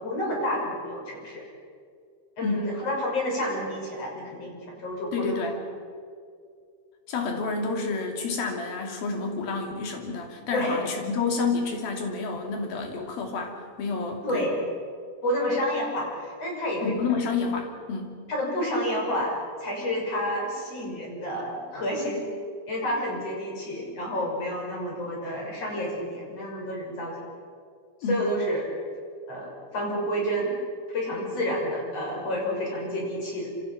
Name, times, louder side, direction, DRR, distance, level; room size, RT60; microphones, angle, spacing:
voice 1, 0.0-1.4 2.4-5.4 10.5-10.8 14.2-14.6 15.2-16.9 18.3-22.3 22.7-27.2 28.1-28.6 29.3-30.5 30.9-33.5, equal, 45° left, -2 dB, 7.4 m, -29 dB
voice 2, 5.1-5.6 7.1-14.4 16.8-18.1 28.0-28.2, left 4 dB, 85° left, 2 dB, 4.8 m, -29 dB
27.0 x 26.5 x 5.9 m, 2.2 s
omnidirectional pair, 4.1 m